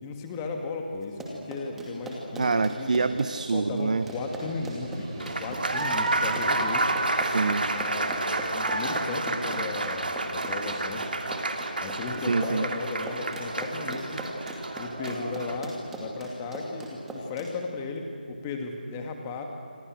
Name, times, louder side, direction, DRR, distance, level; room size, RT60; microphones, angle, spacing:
voice 1, 0.0-2.9 3.5-6.9 7.7-11.0 11.8-14.2 14.8-19.4, left 3 dB, 15° left, 3 dB, 2.3 m, -35 dB
Run, 1.0-17.5, right 1 dB, 5° right, 2.4 m, -40 dB
voice 2, 2.4-4.1 7.2-7.7 12.3-12.7, right 4 dB, 50° right, 11 dB, 0.9 m, -26 dB
sound 1, 4.0-9.0, right 2 dB, 30° right, 5.0 m, -48 dB
Applause, 5.2-15.6, right 2 dB, 65° right, 3.0 m, -30 dB
28.0 x 25.5 x 6.5 m, 2.5 s
figure-of-eight pair, 160°, 5 cm